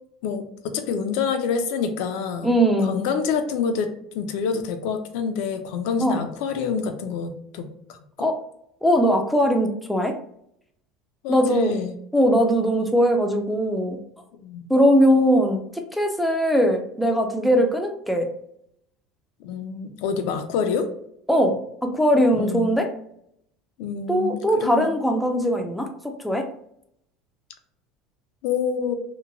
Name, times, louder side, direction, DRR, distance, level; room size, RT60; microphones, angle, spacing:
voice 1, 0.2-8.3 11.2-12.0 14.3-14.7 19.4-20.9 22.3-22.7 23.8-24.9 28.4-28.9, left 6 dB, 70° left, 6 dB, 0.4 m, -27 dB
voice 2, 2.4-3.0 6.0-6.2 8.2-8.4 8.8-10.1 11.3-11.7 12.1-14.0 14.7-18.3 21.3-22.9 24.1-25.9 26.2-26.5, equal, ahead, 3 dB, 0.3 m, -20 dB
2.9 x 2.1 x 2.5 m, 0.71 s
cardioid pair, 140°, 0 cm